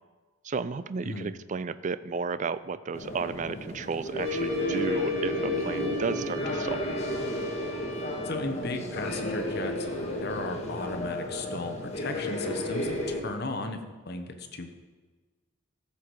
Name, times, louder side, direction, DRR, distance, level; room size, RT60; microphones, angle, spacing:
voice 1, 0.4-6.9, right 5 dB, 40° right, 15 dB, 0.4 m, -33 dB
sound 1, 2.9-13.2, left 1 dB, 35° left, 1.7 m, -32 dB
Trumpet, 4.2-8.4, left 1 dB, 20° right, 4.3 m, -44 dB
voice 2, 8.2-9.7 10.2-14.7, left 2 dB, 55° left, 6 dB, 1.1 m, -35 dB
14.5 x 7.1 x 4.7 m, 1.3 s
head